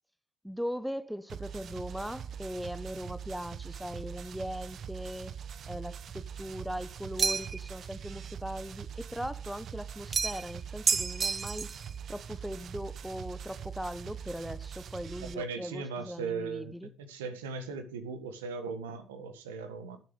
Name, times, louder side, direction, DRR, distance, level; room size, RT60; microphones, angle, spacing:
voice 1, 0.4-5.4 5.7-11.7 12.1-16.9, equal, ahead, 0.9 m, -39 dB
sound 1, 1.3-15.3, right 8 dB, 55° right, 1.0 m, -43 dB
sound 2, 7.2-7.7 10.1-10.5 10.9-11.8, right 5 dB, 40° right, 0.4 m, -29 dB
voice 2, 15.2-20.0, right 5 dB, 90° right, 1.5 m, -38 dB
10.5 x 7.6 x 5.2 m
hypercardioid pair, 55°, 0 cm